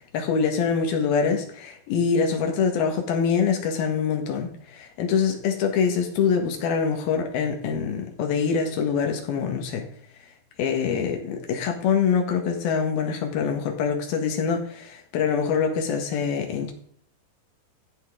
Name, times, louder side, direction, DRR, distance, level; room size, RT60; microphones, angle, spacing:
voice 1, 0.1-9.9 10.6-16.7, left 6 dB, 65° left, 3 dB, 3.3 m, -24 dB
14.5 x 8.2 x 3.8 m, 0.64 s
omnidirectional pair, 5.0 m